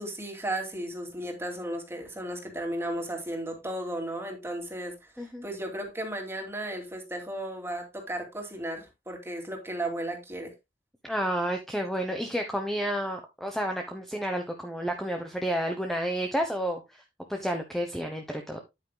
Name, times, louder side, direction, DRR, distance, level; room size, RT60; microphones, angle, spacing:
voice 1, 0.0-10.5, right 1 dB, 15° right, 2.5 m, -35 dB
voice 2, 11.0-17.0 17.3-18.6, equal, ahead, 1.0 m, -31 dB
9.4 x 8.8 x 2.2 m
head